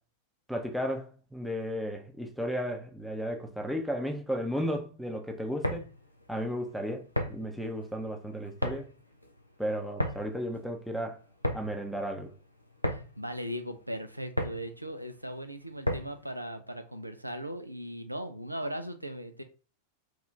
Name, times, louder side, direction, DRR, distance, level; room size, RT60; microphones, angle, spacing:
voice 1, 0.5-5.9 6.3-8.9 9.6-11.2 11.5-12.3, equal, ahead, 0.7 m, -34 dB
sound 1, 5.4-16.3, left 1 dB, 90° left, 0.5 m, -36 dB
voice 2, 12.9-19.4, equal, 85° right, 0.4 m, -38 dB
3.5 x 2.4 x 3.2 m
figure-of-eight pair, 90°, 0 cm